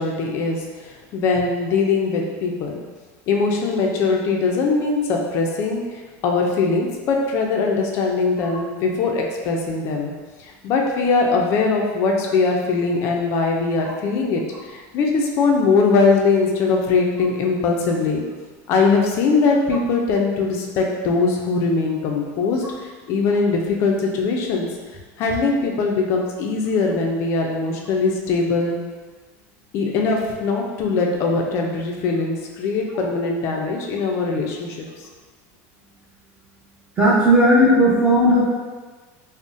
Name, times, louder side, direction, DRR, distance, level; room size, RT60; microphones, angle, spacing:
voice 1, 0.0-2.8 3.3-10.1 10.4-18.2 18.7-24.7 25.2-28.8 29.7-34.9, left 4 dB, 35° left, 1 dB, 0.3 m, -21 dB
voice 2, 37.0-38.4, equal, 15° right, -8 dB, 0.5 m, -15 dB
3.7 x 2.0 x 2.5 m, 1.3 s
supercardioid pair, 170°, 8 cm